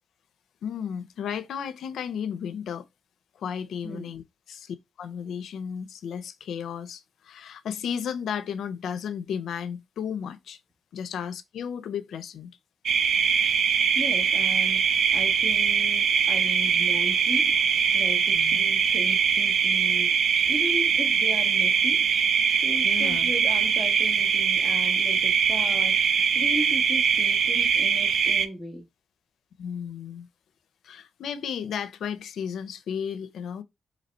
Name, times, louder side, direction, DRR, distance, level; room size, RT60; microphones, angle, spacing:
voice 1, 0.6-2.8 3.4-4.2 4.5-10.6 10.9-12.6 18.3-18.7 22.8-23.3 29.6-30.3 30.8-33.6, left 8 dB, 85° left, 0.5 m, -34 dB
sound 1, 12.9-28.5, right 6 dB, 70° right, 0.4 m, -22 dB
voice 2, 13.9-17.6 17.9-22.1 22.6-26.0 26.3-28.9, equal, ahead, 0.8 m, -37 dB
4.0 x 2.9 x 4.2 m
wide cardioid pair, 135°, 0 cm